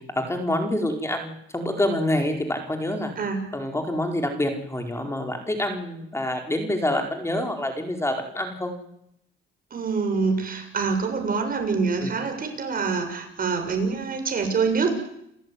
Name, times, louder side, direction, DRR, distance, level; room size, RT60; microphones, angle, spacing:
voice 1, 0.0-3.1 3.5-8.7 12.0-12.1, left 1 dB, 15° left, 4 dB, 4.9 m, -27 dB
voice 2, 3.2-3.5 9.7-15.0, right 4 dB, 45° right, 5 dB, 7.3 m, -25 dB
29.5 x 15.0 x 9.8 m, 0.76 s
cardioid pair, 90°, 20 cm